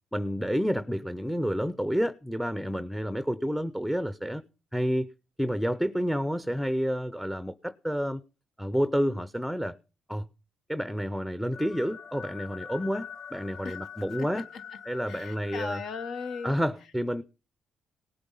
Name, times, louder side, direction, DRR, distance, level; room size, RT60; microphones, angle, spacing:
voice 1, 0.1-4.4 4.7-5.1 5.4-8.2 8.6-9.8 10.1-10.3 10.7-14.5 14.8-15.8 16.4-17.2, equal, ahead, 0.6 m, -29 dB
sound 1, 11.5-16.5, left 7 dB, 50° left, 0.7 m, -44 dB
voice 2, 15.1-16.5, left 5 dB, 70° left, 1.3 m, -37 dB
18.5 x 8.7 x 5.5 m
cardioid pair, 90°, 0 cm